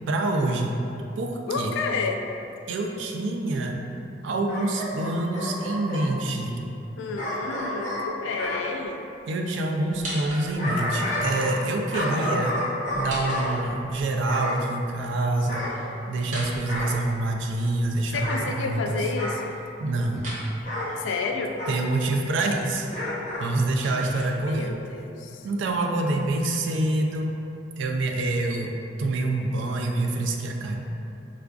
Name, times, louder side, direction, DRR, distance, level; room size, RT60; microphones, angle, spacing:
voice 1, 0.1-0.8 1.2-1.7 2.7-3.8 4.2-6.6 9.3-12.5 12.9-15.6 16.0-19.0 19.8-20.3 21.7-22.9 23.4-24.7 25.4-27.3 27.8-30.9, right 2 dB, 75° right, 2 dB, 0.3 m, -26 dB
voice 2, 1.5-2.3 7.0-9.1 18.1-19.6 21.0-21.6 23.8-24.0 24.3-25.5, left 4 dB, 80° left, 3 dB, 0.3 m, -30 dB
Bark / Growling, 4.5-6.1 7.2-8.6 10.2-11.6 11.9-13.5 14.3-14.6 15.5-16.3 16.7-17.0 18.1-18.4 19.2-19.4 20.7-20.9 21.6-21.8 22.9-23.5 23.8-23.9, left 1 dB, 40° left, 0.7 m, -30 dB
sound 1, 9.9-10.9 12.8-14.1 16.2-17.5 20.1-20.5 23.2-24.8, right 1 dB, 40° right, 0.9 m, -39 dB
4.5 x 2.4 x 2.3 m, 2.8 s
head